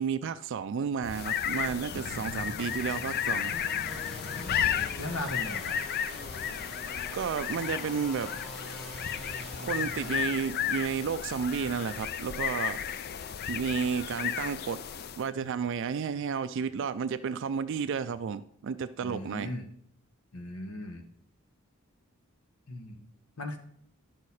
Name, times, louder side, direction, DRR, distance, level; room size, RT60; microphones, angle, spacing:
voice 1, 0.0-3.5 7.1-8.3 9.6-12.8 13.5-14.8 15.2-19.5, right 6 dB, 55° right, 11 dB, 0.3 m, -32 dB
sound 1, 1.0-15.3, left 8 dB, 45° left, 0.4 m, -33 dB
voice 2, 1.9-2.5 4.2-5.8 19.0-19.7 20.3-21.0 22.7-23.0 23.4-23.6, left 1 dB, 75° left, 6 dB, 1.3 m, -38 dB
sound 2, 2.7-10.2, right 1 dB, ahead, 1.2 m, -46 dB
11.0 x 6.5 x 4.2 m, 0.67 s
head